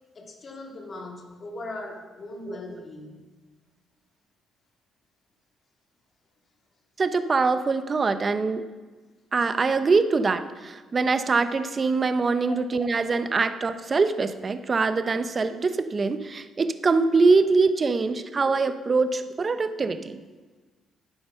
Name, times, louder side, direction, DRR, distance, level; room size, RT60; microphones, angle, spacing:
voice 1, 0.1-3.2 12.5-12.6 13.1-13.2, left 2 dB, 40° left, 1 dB, 2.4 m, -39 dB
voice 2, 7.0-8.6 9.3-20.2, right 4 dB, 35° right, 10 dB, 0.8 m, -23 dB
12.0 x 9.2 x 5.6 m, 1.3 s
cardioid pair, 90°, 0 cm